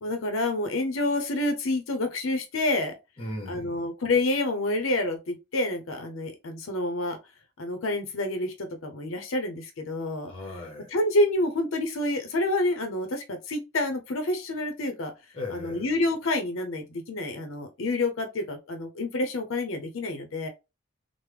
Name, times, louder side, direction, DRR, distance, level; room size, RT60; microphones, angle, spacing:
voice 1, 0.0-2.9 3.5-7.2 7.6-10.3 10.9-15.1 15.5-20.5, left 2 dB, 75° left, 0.6 m, -28 dB
voice 2, 3.2-3.9 10.2-10.9 15.3-15.9, left 2 dB, 25° left, 0.8 m, -37 dB
3.2 x 2.0 x 3.2 m
head